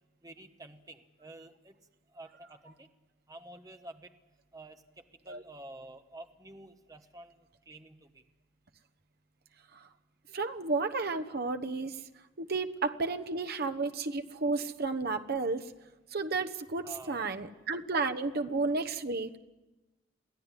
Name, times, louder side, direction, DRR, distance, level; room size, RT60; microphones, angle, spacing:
voice 1, 0.2-1.7 2.1-2.9 3.3-4.1 4.5-4.8 5.2-7.3 7.7-8.2 16.8-17.5 18.3-18.4, right 1 dB, 20° right, 7 dB, 1.2 m, -49 dB
voice 2, 10.3-12.0 12.4-15.7 16.1-19.4, right 3 dB, 55° right, 7 dB, 1.1 m, -32 dB
23.0 x 15.5 x 9.8 m, 1.1 s
head